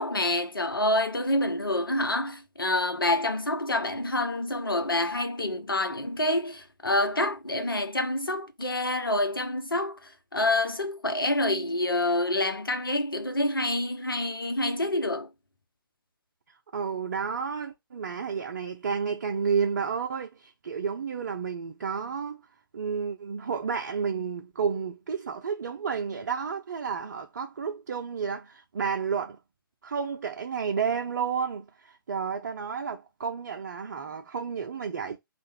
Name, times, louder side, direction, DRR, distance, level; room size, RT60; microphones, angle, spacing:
voice 1, 0.0-15.3, left 1 dB, 75° left, 1.0 m, -27 dB
voice 2, 16.7-22.4 22.7-29.4 29.8-35.2, right 6 dB, 45° right, 0.6 m, -31 dB
4.7 x 2.5 x 4.4 m
figure-of-eight pair, 135°, 12 cm